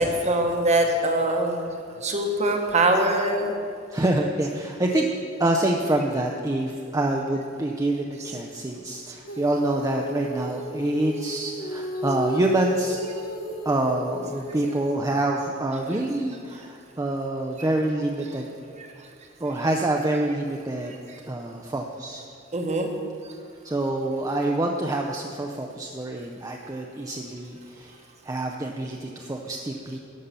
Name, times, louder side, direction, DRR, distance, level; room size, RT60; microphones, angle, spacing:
voice 1, 0.0-1.6 2.0-3.5 22.5-22.9, right 1 dB, 35° right, 3 dB, 1.1 m, -22 dB
voice 2, 3.9-5.1 5.4-13.0 13.6-18.5 19.4-20.9 21.3-22.2 23.6-28.0 28.2-30.0, right 2 dB, 15° right, 1 dB, 0.5 m, -26 dB
Female singing, 9.3-15.0, left 1 dB, 45° left, 1.0 m, -34 dB
11.5 x 5.5 x 6.7 m, 2.4 s
head